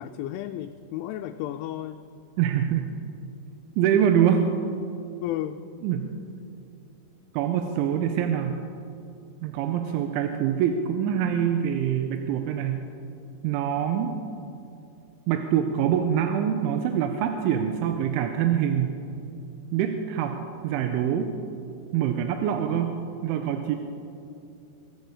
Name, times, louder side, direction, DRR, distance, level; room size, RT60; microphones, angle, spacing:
voice 1, 0.0-2.0 5.2-5.7, left 12 dB, 85° left, 7 dB, 2.8 m, -33 dB
voice 2, 2.4-2.9 3.8-4.5 5.8-6.1 7.3-8.6 9.4-12.8 13.4-14.2 15.3-19.0 19.7-21.3 21.9-22.9 23.2-23.8, right 9 dB, 80° right, 5 dB, 3.0 m, -25 dB
23.5 x 8.5 x 6.6 m, 2.6 s
omnidirectional pair, 5.7 m